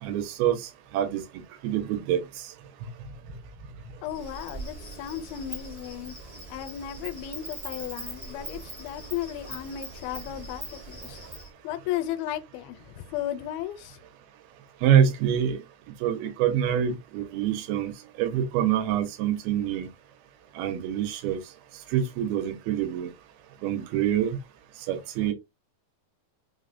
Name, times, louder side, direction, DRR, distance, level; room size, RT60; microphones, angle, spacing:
voice 1, 0.0-1.2 1.6-2.5 2.8-2.9 14.8-15.6 16.0-17.9 18.2-19.9 20.6-21.4 21.9-23.1 23.6-24.4 24.9-25.3, right 9 dB, 85° right, 2.6 m, -26 dB
voice 2, 4.0-6.2 6.5-11.2 11.6-14.0, left 12 dB, 85° left, 2.4 m, -35 dB
Insect, 4.1-11.5, right 2 dB, 45° right, 0.7 m, -41 dB
5.7 x 2.1 x 2.4 m
omnidirectional pair, 4.2 m